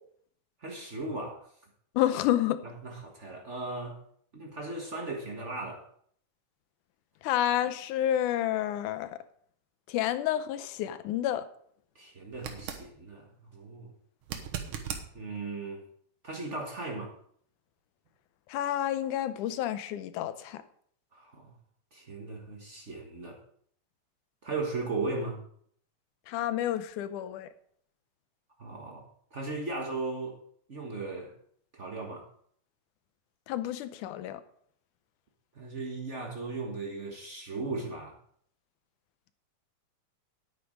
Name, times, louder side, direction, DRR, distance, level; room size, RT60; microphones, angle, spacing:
voice 1, 0.6-1.5 2.6-4.0 4.3-5.9 11.9-13.9 15.1-15.8 16.2-17.1 21.1-21.5 21.9-23.4 24.4-25.4 28.6-29.1 29.3-30.4 30.7-31.3 31.7-32.3 35.5-38.2, right 3 dB, 55° right, 1 dB, 0.7 m, -37 dB
voice 2, 2.0-2.6 7.2-9.1 9.9-11.5 18.5-20.6 26.3-27.5 33.5-34.4, left 12 dB, 85° left, 12 dB, 2.2 m, -29 dB
sound 1, 12.3-12.9 14.2-15.1 18.1-18.2, right 8 dB, 85° right, 2.7 m, -37 dB
9.9 x 9.5 x 4.9 m, 0.63 s
omnidirectional pair, 3.5 m